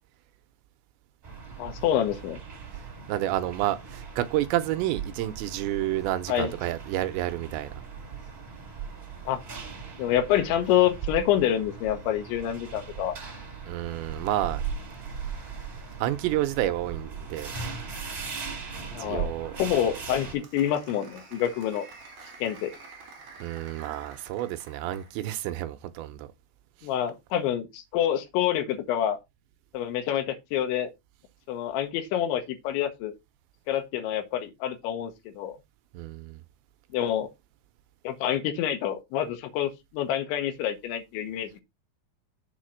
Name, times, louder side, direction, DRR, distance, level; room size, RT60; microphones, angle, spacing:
sound 1, 1.2-20.3, right 6 dB, 25° right, 3.0 m, -39 dB
voice 1, 1.6-2.4 6.3-6.5 9.3-9.4 10.0-13.2 18.9-19.3 19.6-21.9 22.4-22.7 26.8-29.2 29.7-30.9 31.5-33.1 33.7-35.5 36.9-37.3 38.1-41.6, left 10 dB, 90° left, 3.4 m, -27 dB
voice 2, 2.7-7.8 13.7-14.6 16.0-17.5 19.0-19.6 22.2-22.3 23.4-26.3 26.8-26.9 35.9-36.4, right 14 dB, 85° right, 2.8 m, -30 dB
Applause, 19.4-25.2, right 4 dB, 45° right, 2.9 m, -49 dB
7.1 x 4.3 x 6.3 m
omnidirectional pair, 5.2 m